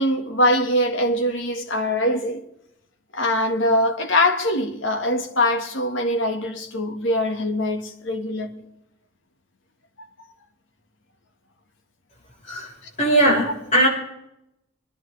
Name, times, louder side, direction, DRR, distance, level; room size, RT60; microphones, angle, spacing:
voice 1, 0.0-2.4 3.1-8.5, left 1 dB, 70° left, 1.8 m, -22 dB
voice 2, 13.0-13.9, right 1 dB, 35° left, 6.4 m, -19 dB
25.0 x 11.0 x 3.4 m
head